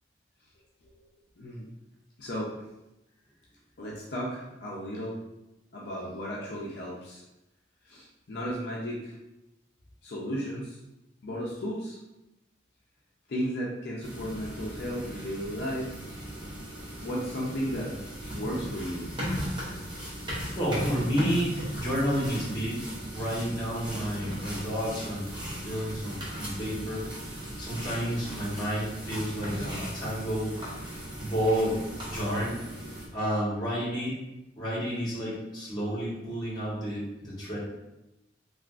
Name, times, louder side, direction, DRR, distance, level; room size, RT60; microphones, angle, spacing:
voice 1, 1.4-1.7 2.2-2.5 3.8-5.2 5.7-7.2 7.8-9.1 10.0-10.8 11.2-12.0 13.3-15.9 17.0-17.9 18.3-19.0, equal, 60° left, -4 dB, 0.5 m, -34 dB
sound 1, 14.0-33.1, equal, 25° right, 0.6 m, -37 dB
voice 2, 20.5-22.8 23.1-27.1 27.6-30.5 31.2-32.6 33.1-34.2 34.6-37.6, equal, 20° left, -7 dB, 1.0 m, -30 dB
3.4 x 2.4 x 2.4 m, 0.94 s
head